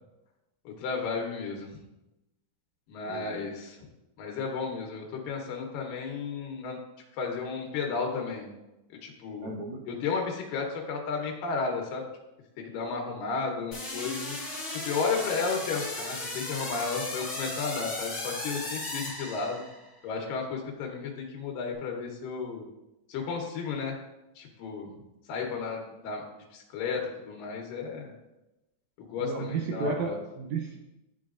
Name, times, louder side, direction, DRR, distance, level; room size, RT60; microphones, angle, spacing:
voice 1, 0.7-1.7 2.9-3.8 4.2-6.8 7.2-8.5 9.0-9.5 9.9-12.0 12.6-14.4 14.7-19.6 20.0-22.6 23.1-24.0 24.4-25.0 25.3-26.2 26.5-28.1 29.0-30.2, left 5 dB, 90° left, 1 dB, 2.7 m, -33 dB
voice 2, 3.1-3.5 9.4-9.8 29.2-30.8, right 4 dB, 75° right, 1 dB, 1.8 m, -33 dB
sound 1, 13.7-19.9, left 2 dB, 55° left, 0.6 m, -36 dB
11.0 x 3.9 x 2.5 m, 0.95 s
omnidirectional pair, 3.8 m